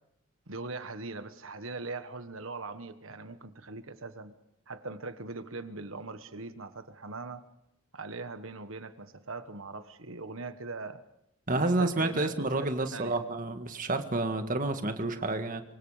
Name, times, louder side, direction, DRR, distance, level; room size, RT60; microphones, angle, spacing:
voice 1, 0.5-4.3 4.7-7.4 7.9-11.0 11.5-13.2, right 3 dB, 70° right, 10 dB, 1.4 m, -40 dB
voice 2, 11.5-15.6, right 2 dB, 40° right, 7 dB, 1.8 m, -29 dB
24.5 x 24.5 x 5.0 m, 0.81 s
head